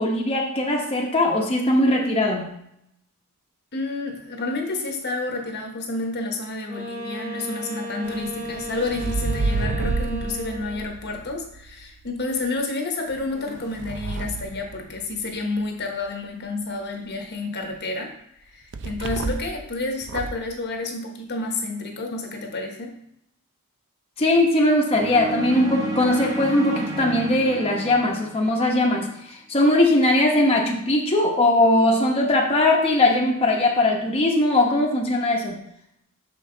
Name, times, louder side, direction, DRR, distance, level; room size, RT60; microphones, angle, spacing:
voice 1, 0.0-2.5 24.2-35.6, left 1 dB, 25° left, -2 dB, 0.9 m, -20 dB
voice 2, 3.7-18.1 18.4-23.0, left 2 dB, 50° left, 3 dB, 1.1 m, -30 dB
Wind instrument woodwind instrument, 6.7-11.0, equal, 85° right, 2.1 m, -35 dB
sound 1, 8.0-12.1 13.1-15.4 18.7-19.6 20.0-20.5, right 3 dB, 55° right, 0.5 m, -30 dB
sound 2, 24.9-29.1, right 1 dB, 20° right, 1.1 m, -32 dB
6.5 x 5.6 x 3.8 m, 0.77 s
head